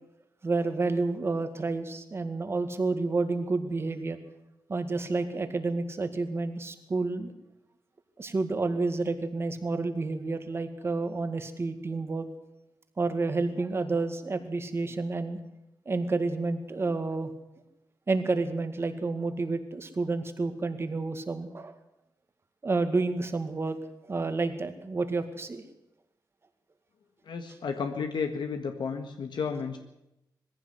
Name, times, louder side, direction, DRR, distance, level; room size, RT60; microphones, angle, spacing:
voice 1, 0.4-4.2 4.7-7.3 8.2-12.3 13.0-15.4 15.9-17.3 18.1-21.8 22.6-23.8 24.1-25.6, right 3 dB, 35° right, 8 dB, 2.0 m, -30 dB
voice 2, 27.3-29.8, left 5 dB, 85° left, 5 dB, 1.7 m, -32 dB
21.0 x 15.5 x 8.1 m, 0.88 s
wide cardioid pair, 165°, 8 cm